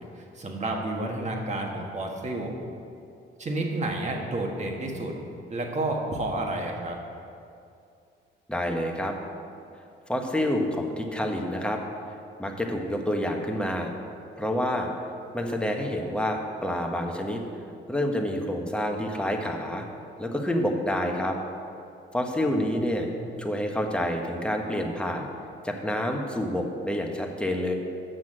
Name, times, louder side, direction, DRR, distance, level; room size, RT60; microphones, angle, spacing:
voice 1, 0.2-2.5 3.4-5.1 5.5-7.0 22.5-23.5, right 2 dB, 35° right, 1 dB, 1.6 m, -31 dB
voice 2, 8.5-9.1 10.1-11.8 12.4-13.9 14.4-14.9 15.3-17.4 17.9-19.8 20.2-21.4 22.1-23.1 23.4-25.3 25.6-27.7, left 1 dB, 5° left, 2 dB, 1.2 m, -28 dB
7.9 x 6.0 x 7.5 m, 2.5 s
cardioid pair, 90°, 20 cm